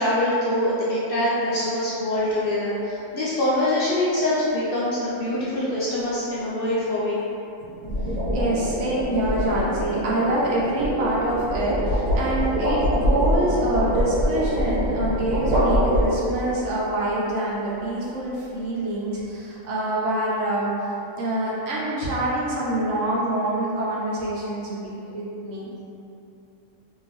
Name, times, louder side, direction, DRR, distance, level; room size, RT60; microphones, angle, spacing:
voice 1, 0.0-7.2, left 1 dB, 65° left, -9 dB, 0.6 m, -24 dB
sound 1, 2.1-2.5 7.6-16.5, equal, 90° right, 1.3 m, -24 dB
voice 2, 8.3-20.7 21.2-25.7, right 1 dB, 65° right, -7 dB, 1.0 m, -26 dB
2.8 x 2.7 x 2.9 m, 2.8 s
omnidirectional pair, 1.4 m